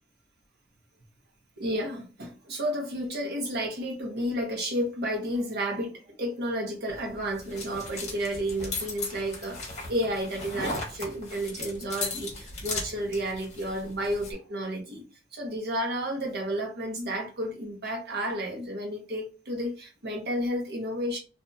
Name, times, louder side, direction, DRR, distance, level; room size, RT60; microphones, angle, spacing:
voice 1, 1.6-15.0 15.3-21.2, equal, 60° right, 0.9 m, -31 dB
sound 1, 6.9-14.3, left 3 dB, 35° left, 1.1 m, -37 dB
2.6 x 2.6 x 2.3 m
head